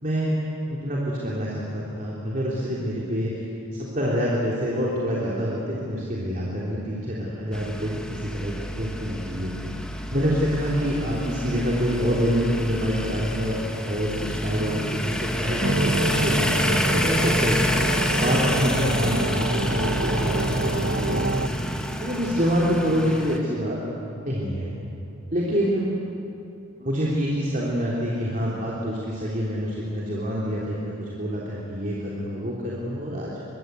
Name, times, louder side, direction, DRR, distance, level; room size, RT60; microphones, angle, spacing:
voice 1, 0.0-0.3 0.7-3.5 3.8-9.7 10.1-13.6 13.8-17.6 18.2-21.6 22.0-23.8 24.2-24.7 25.3-25.9 26.8-33.3, equal, 40° right, -6 dB, 3.3 m, -26 dB
sound 1, 7.5-23.4, equal, 5° left, 1.3 m, -28 dB
sound 2, 15.6-21.5, right 2 dB, 65° right, 1.1 m, -27 dB
24.0 x 22.0 x 8.3 m, 2.8 s
head